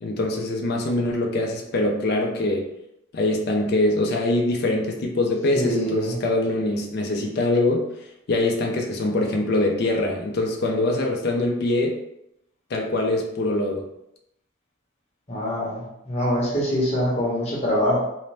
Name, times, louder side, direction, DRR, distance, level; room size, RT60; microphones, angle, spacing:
voice 1, 0.0-2.7 3.1-7.9 8.3-12.0 12.7-13.8, left 2 dB, 50° left, 1 dB, 0.3 m, -23 dB
voice 2, 5.5-6.2 15.3-18.0, equal, 30° left, -4 dB, 0.8 m, -24 dB
2.5 x 2.0 x 3.2 m, 0.81 s
head